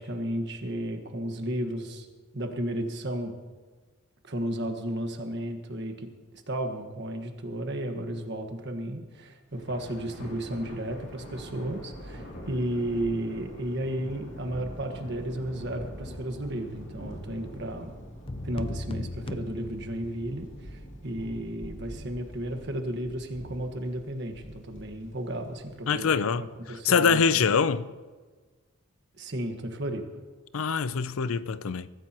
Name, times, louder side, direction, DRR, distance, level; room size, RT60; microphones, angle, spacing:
voice 1, 0.0-2.1 2.3-3.3 4.2-6.1 6.5-17.9 18.4-26.1 26.4-27.2 29.2-30.0, right 1 dB, 55° right, 1.5 m, -33 dB
Thunder, 9.5-26.1, equal, 55° left, 2.9 m, -44 dB
sound 1, 18.3-20.5, left 1 dB, 25° left, 0.5 m, -37 dB
voice 2, 25.9-26.4 26.8-27.9 30.5-31.9, left 6 dB, 75° left, 0.5 m, -24 dB
22.5 x 14.0 x 3.0 m
head